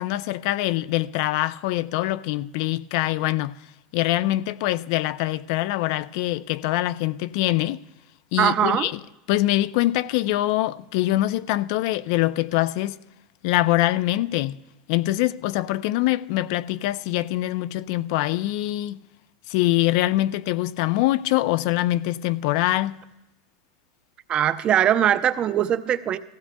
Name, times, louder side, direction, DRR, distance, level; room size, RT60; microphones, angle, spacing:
voice 1, 0.0-3.6 3.9-7.8 8.3-9.0 9.3-13.0 13.4-14.6 14.9-19.0 19.5-23.0, left 16 dB, 65° left, 0.4 m, -24 dB
voice 2, 8.4-8.9 24.3-26.2, right 10 dB, 35° right, 0.6 m, -21 dB
17.5 x 15.5 x 2.2 m
supercardioid pair, 110°, 3 cm